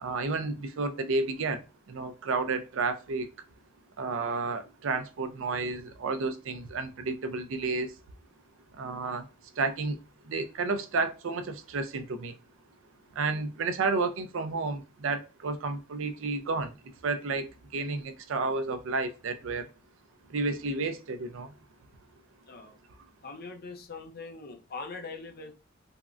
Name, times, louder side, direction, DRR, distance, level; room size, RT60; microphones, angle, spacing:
voice 1, 0.0-3.3 4.0-7.9 8.7-9.3 9.6-10.0 10.2-12.4 13.2-16.8 17.0-19.7 20.3-21.5, right 3 dB, 65° right, 0.4 m, -31 dB
voice 2, 23.2-25.5, left 4 dB, 50° left, 0.6 m, -42 dB
3.5 x 2.1 x 2.4 m
head